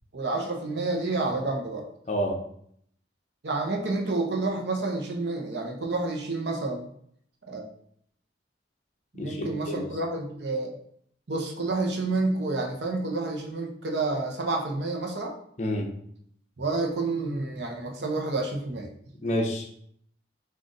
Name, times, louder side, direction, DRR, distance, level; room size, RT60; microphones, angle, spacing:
voice 1, 0.1-1.9 3.4-6.9 7.5-7.7 9.1-10.8 11.3-15.4 16.6-18.9, right 3 dB, 70° right, 2 dB, 0.7 m, -29 dB
voice 2, 2.1-2.4 9.2-9.9 15.6-15.9 19.2-19.8, equal, 40° left, 1 dB, 0.6 m, -29 dB
3.7 x 2.5 x 3.8 m, 0.67 s
head